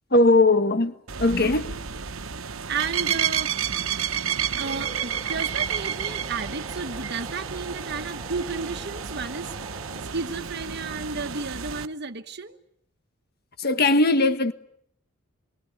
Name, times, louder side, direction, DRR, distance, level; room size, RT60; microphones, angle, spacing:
voice 1, 0.1-1.7 13.6-14.5, left 2 dB, 45° left, 1.6 m, -20 dB
sound 1, 1.1-11.9, right 8 dB, 75° right, 1.1 m, -31 dB
voice 2, 2.7-3.5 4.5-9.8 10.0-12.6, right 4 dB, 50° right, 1.3 m, -33 dB
sound 2, 4.6-10.1, right 1 dB, 20° right, 3.6 m, -44 dB
28.0 x 23.0 x 9.0 m
head